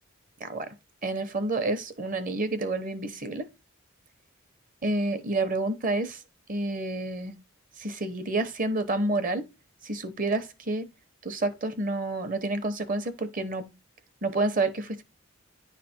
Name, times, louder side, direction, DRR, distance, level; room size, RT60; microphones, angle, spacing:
voice 1, 0.4-0.7 1.0-3.5 4.8-6.2 6.5-7.3 7.8-9.5 9.8-10.9 11.2-13.7 14.2-15.0, right 2 dB, 40° right, 0.9 m, -29 dB
9.9 x 3.3 x 4.3 m
head